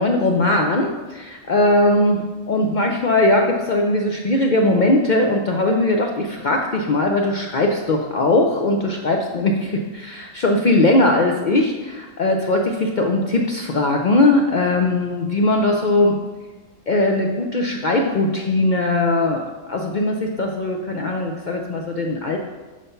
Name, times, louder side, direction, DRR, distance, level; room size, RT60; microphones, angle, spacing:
voice 1, 0.0-16.1 16.9-22.4, left 2 dB, 75° left, 2 dB, 0.4 m, -19 dB
5.5 x 5.0 x 5.6 m, 1.3 s
omnidirectional pair, 1.5 m